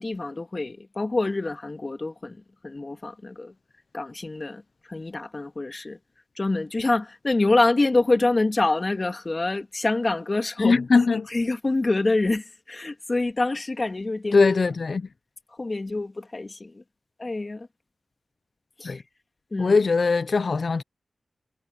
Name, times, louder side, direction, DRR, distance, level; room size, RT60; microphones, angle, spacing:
voice 1, 0.0-2.4 2.6-3.5 3.9-4.6 4.9-6.0 6.4-10.7 11.3-14.4 15.6-16.8 17.2-17.7 18.8-19.0 19.5-19.8, left 2 dB, 45° left, 2.4 m, -26 dB
voice 2, 10.6-11.3 14.3-15.1 18.8-19.0 19.6-20.8, left 4 dB, 65° left, 0.8 m, -20 dB
cardioid pair, 45°, 0 cm